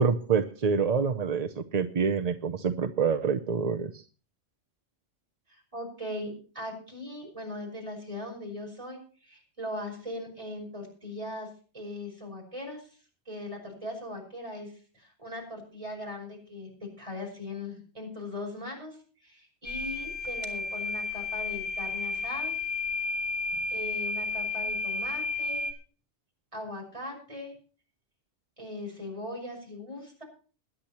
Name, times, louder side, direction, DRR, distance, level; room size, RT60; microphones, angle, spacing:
voice 1, 0.0-4.0, right 5 dB, 45° right, 7 dB, 0.6 m, -26 dB
voice 2, 5.5-11.5 11.7-12.9 13.3-22.5 23.7-25.7 26.5-27.5 28.6-30.2, left 1 dB, 30° right, 0 dB, 5.8 m, -39 dB
sound 1, 19.6-25.7, left 3 dB, 75° right, 2.4 m, -32 dB
21.5 x 10.0 x 3.0 m, 0.39 s
omnidirectional pair, 1.2 m